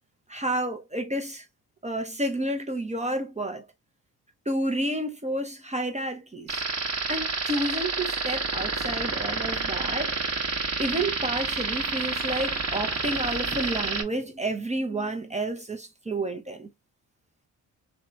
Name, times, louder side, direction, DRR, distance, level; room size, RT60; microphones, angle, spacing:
voice 1, 0.3-1.4 1.8-3.6 4.5-6.6 7.1-10.2 10.8-16.7, right 1 dB, 15° right, 0.6 m, -30 dB
sound 1, 6.5-14.0, right 3 dB, 35° right, 1.1 m, -29 dB
2.7 x 2.2 x 2.5 m
hypercardioid pair, 45°, 45 cm